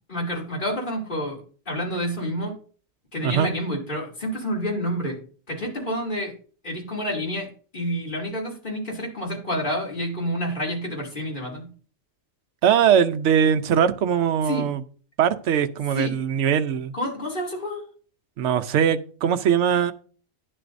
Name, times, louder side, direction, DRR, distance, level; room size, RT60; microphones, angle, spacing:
voice 1, 0.1-1.4 1.7-2.5 3.1-5.2 5.5-6.3 6.6-11.7 14.4-14.7 15.9-16.1 16.9-17.8, equal, 40° left, 2.9 m, -29 dB
voice 2, 12.6-14.8 15.2-16.9 18.4-19.9, right 8 dB, 70° right, 1.0 m, -21 dB
11.0 x 10.0 x 2.6 m
omnidirectional pair, 1.3 m